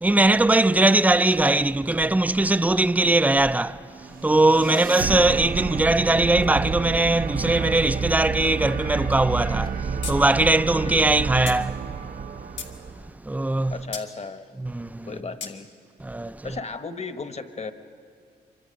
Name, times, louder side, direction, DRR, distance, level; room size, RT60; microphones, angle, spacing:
voice 1, 0.0-12.1 12.6-12.7 13.2-13.7 14.6-15.1 16.0-16.5, right 2 dB, 10° right, 0.5 m, -21 dB
sound 1, 4.0-13.1, right 6 dB, 50° right, 0.7 m, -30 dB
sound 2, 10.0-10.2 10.5-10.6 11.5-11.6 12.2-12.8 13.9-14.1 15.4-15.5, left 5 dB, 85° left, 2.1 m, -34 dB
voice 2, 13.7-14.5 15.1-15.7 16.4-17.7, left 4 dB, 35° left, 1.2 m, -35 dB
26.0 x 24.0 x 5.3 m
cardioid pair, 70°, 18 cm